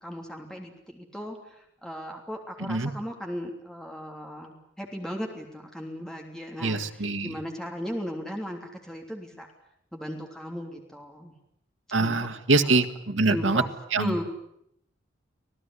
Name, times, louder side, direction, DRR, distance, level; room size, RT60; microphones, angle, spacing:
voice 1, 0.0-9.5 9.9-11.3 12.0-12.2 12.6-12.8 13.3-13.7 14.0-14.2, equal, 5° left, 1 dB, 3.2 m, -36 dB
voice 2, 6.6-7.3 11.9-13.6 13.9-14.1, right 3 dB, 90° right, 7 dB, 1.8 m, -24 dB
25.5 x 18.0 x 9.9 m, 0.73 s
head